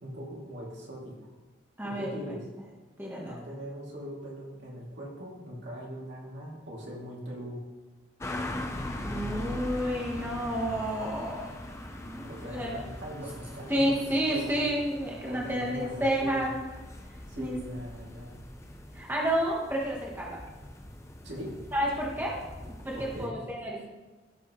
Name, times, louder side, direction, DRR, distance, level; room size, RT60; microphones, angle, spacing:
voice 1, 0.0-1.3 1.8-2.4 3.2-7.6 12.2-14.7 15.2-16.5 17.3-18.4 21.2-21.5 22.9-23.3, equal, 70° right, -4 dB, 2.7 m, -41 dB
voice 2, 1.8-2.4 3.0-3.3 9.0-11.5 12.1-12.8 13.7-16.5 17.4-17.6 18.9-20.4 21.7-22.3 22.8-23.9, equal, 10° right, -3 dB, 1.3 m, -30 dB
sound 1, 8.2-23.3, left 1 dB, 15° left, 0.7 m, -41 dB
15.5 x 6.0 x 3.2 m, 1.2 s
head